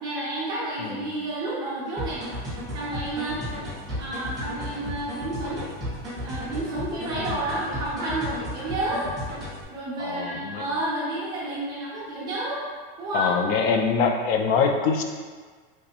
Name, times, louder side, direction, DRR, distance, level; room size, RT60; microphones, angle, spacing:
voice 1, 0.0-2.2 2.7-3.4 4.0-5.7 6.2-9.1 9.7-12.6 13.0-13.3, right 1 dB, 15° right, -8 dB, 0.3 m, -30 dB
sound 1, 2.0-9.6, equal, ahead, 1.4 m, -34 dB
voice 2, 10.0-10.6 13.1-15.0, left 5 dB, 70° left, 3 dB, 0.5 m, -24 dB
3.5 x 3.1 x 2.8 m, 1.5 s
supercardioid pair, 175°, 30 cm